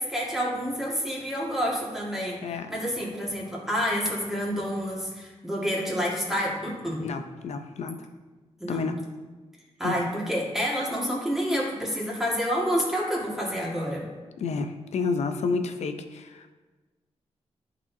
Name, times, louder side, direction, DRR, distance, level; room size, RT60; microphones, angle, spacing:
voice 1, 0.0-7.1 8.6-8.9 9.8-14.0, equal, 5° right, -4 dB, 1.8 m, -28 dB
voice 2, 7.0-8.1 8.7-9.0 9.8-10.0 14.4-16.6, left 4 dB, 75° left, 7 dB, 0.5 m, -30 dB
11.0 x 4.1 x 2.7 m, 1.3 s
cardioid pair, 95°, 11 cm